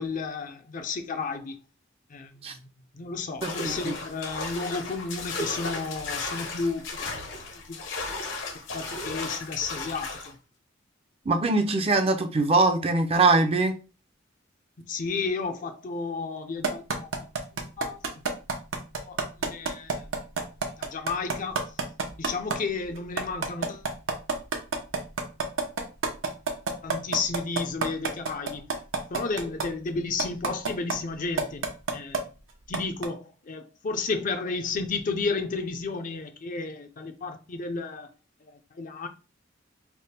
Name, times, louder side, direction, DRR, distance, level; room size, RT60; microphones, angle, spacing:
voice 1, 0.0-1.5 2.1-7.1 7.5-7.9 8.7-10.4 14.8-17.1 17.5-18.2 19.0-20.1 20.8-21.6 22.2-23.9 26.8-28.7 29.1-31.7 31.9-32.3 32.7-38.1 38.4-39.1, left 4 dB, 45° left, 0.5 m, -32 dB
sound 1, 3.4-10.3, left 3 dB, 70° left, 1.0 m, -35 dB
voice 2, 3.4-3.9 11.3-13.7, right 3 dB, 30° right, 0.5 m, -22 dB
sound 2, 16.6-22.6 23.0-29.6 30.2-30.9 31.4-32.2 32.7-33.0, right 4 dB, 80° right, 0.7 m, -27 dB
3.4 x 2.1 x 4.2 m
head